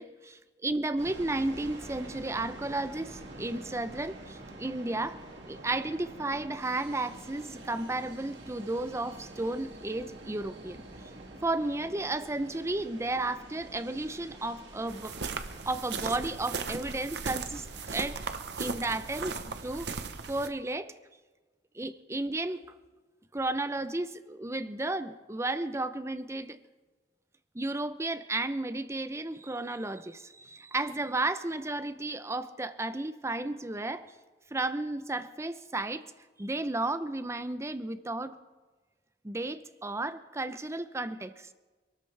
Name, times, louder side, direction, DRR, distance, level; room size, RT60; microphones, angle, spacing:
voice 1, 0.0-5.2 5.5-10.8 11.4-15.2 15.7-18.2 18.6-19.9 20.3-20.9 21.7-22.6 23.3-26.6 27.5-34.1 34.5-36.0 36.4-38.4 39.2-41.5, right 2 dB, 15° right, 12 dB, 0.6 m, -33 dB
sound 1, 1.0-18.1, right 1 dB, 85° right, 2.4 m, -47 dB
sound 2, 14.9-20.5, right 4 dB, 65° right, 0.9 m, -37 dB
26.0 x 13.5 x 3.3 m, 1.3 s
head